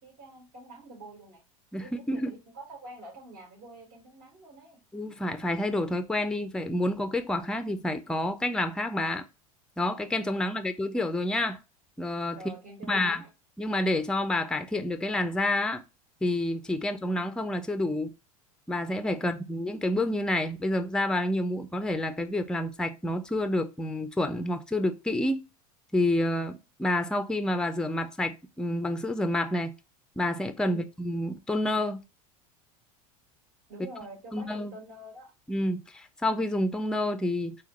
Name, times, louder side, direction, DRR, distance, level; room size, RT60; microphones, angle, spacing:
voice 1, 0.0-1.4 1.8-4.8 10.5-10.9 12.3-13.3 19.1-19.3 30.7-30.8 33.7-35.3, right 2 dB, 55° right, 2.0 m, -47 dB
voice 2, 1.7-2.3 4.9-9.2 9.8-11.6 12.0-12.4 12.9-13.2 13.6-15.8 16.2-18.1 18.7-25.4 25.9-29.7 30.2-32.0 34.3-34.7 35.5-37.6, left 1 dB, 5° left, 0.5 m, -29 dB
3.8 x 2.9 x 3.0 m
hypercardioid pair, 95°, 18 cm